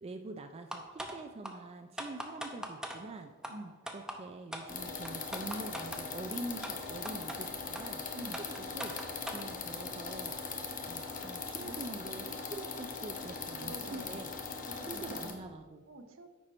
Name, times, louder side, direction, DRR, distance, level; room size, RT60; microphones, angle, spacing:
voice 1, 0.0-3.3 3.9-10.4 10.8-14.3 14.8-15.8, right 2 dB, 30° right, 6 dB, 0.4 m, -45 dB
sound 1, 0.7-1.2 1.4-1.5 2.0-3.0 3.4-3.5 3.9-4.2 4.5-4.7 5.1-6.0 6.6-6.7 7.1-7.4 7.8-7.9 8.3-9.4, right 1 dB, 5° right, 0.7 m, -40 dB
voice 2, 3.5-3.8 8.1-8.4 11.6-12.0 13.6-14.2 14.7-15.3 15.9-16.3, right 1 dB, 70° right, 7 dB, 0.8 m, -47 dB
sound 2, 4.7-15.3, left 5 dB, 40° left, 0.9 m, -40 dB
9.8 x 4.4 x 4.2 m, 1.3 s
head